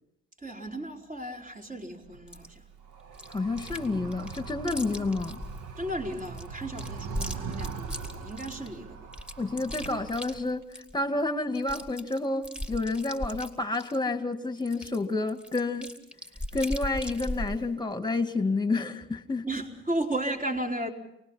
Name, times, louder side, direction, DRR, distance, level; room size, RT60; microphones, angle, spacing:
voice 1, 0.4-2.6 5.8-9.1 19.5-20.9, right 1 dB, 25° right, 1 dB, 4.4 m, -34 dB
Animal, 2.0-10.6, right 5 dB, 75° right, 1.8 m, -41 dB
Chewing mastication, 2.3-2.5 3.1-5.6 6.1-8.7 9.1-11.0 11.3-11.4 11.6-14.0 14.6-17.6, equal, 5° right, 2.8 m, -38 dB
voice 2, 3.3-5.4 9.4-10.6 10.9-15.9 16.5-19.5, left 3 dB, 15° left, 8 dB, 2.1 m, -29 dB
28.5 x 20.0 x 5.7 m, 0.84 s
supercardioid pair, 75°, 31 cm